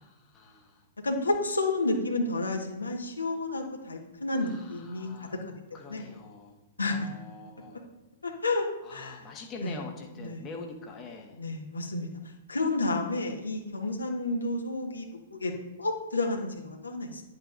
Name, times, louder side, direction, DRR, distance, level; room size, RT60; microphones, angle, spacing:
voice 1, 0.0-0.8 4.4-5.4 5.7-6.6 6.9-7.8 8.8-11.4, left 4 dB, 25° left, 1 dB, 1.3 m, -45 dB
voice 2, 1.0-5.3 5.9-6.0 6.8-7.1 7.7-7.8 8.2-9.2 9.6-9.8 10.2-10.5 11.4-12.1 12.5-15.5 15.8-17.2, left 2 dB, 80° left, 1 dB, 1.5 m, -30 dB
10.5 x 8.0 x 2.6 m, 1.0 s
figure-of-eight pair, 110°, 0 cm